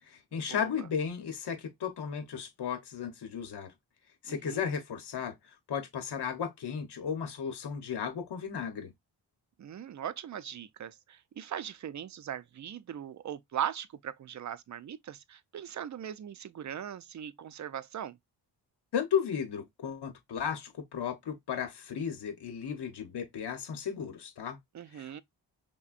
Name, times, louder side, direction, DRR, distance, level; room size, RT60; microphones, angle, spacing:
voice 1, 0.1-3.7 4.2-5.3 5.7-8.9 18.9-24.6 24.9-25.2, left 7 dB, 65° left, 1.0 m, -35 dB
voice 2, 4.3-4.6 9.6-18.2 24.7-25.2, right 9 dB, 45° right, 0.5 m, -39 dB
5.8 x 2.2 x 2.4 m
cardioid pair, 80°, 42 cm